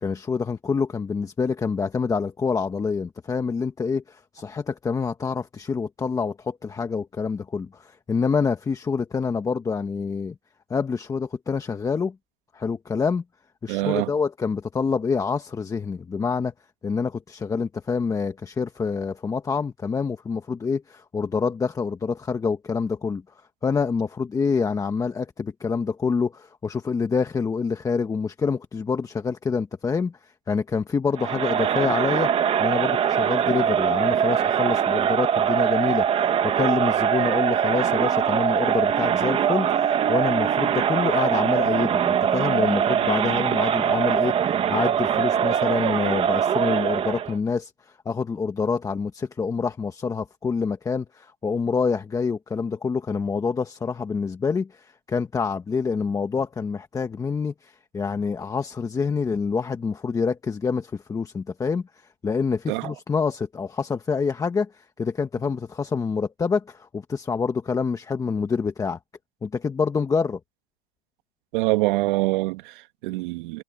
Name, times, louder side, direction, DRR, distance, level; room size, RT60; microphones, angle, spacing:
voice 1, 0.0-10.4 10.7-12.1 12.5-13.2 13.6-16.5 16.8-23.2 23.6-32.3 32.6-36.1 36.4-61.9 62.2-69.0 69.4-70.4, left 5 dB, 10° left, 1.5 m, -26 dB
voice 2, 13.7-14.1 62.7-62.9 71.5-73.6, right 21 dB, 50° right, 1.8 m, -25 dB
Crowd, 31.2-47.3, right 8 dB, 15° right, 1.5 m, -22 dB
supercardioid pair, 150°, 33 cm